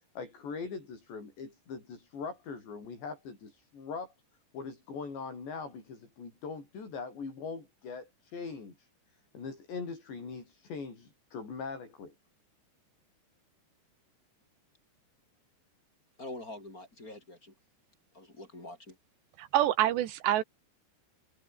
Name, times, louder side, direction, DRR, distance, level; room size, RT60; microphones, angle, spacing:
voice 1, 0.2-4.1 4.5-8.9 9.3-12.1, left 5 dB, 85° left, 9.8 m, -41 dB
voice 2, 16.2-17.5 18.1-19.0, left 1 dB, 20° left, 5.2 m, -45 dB
voice 3, 19.4-20.4, right 13 dB, 80° right, 3.7 m, -26 dB
omnidirectional pair, 4.9 m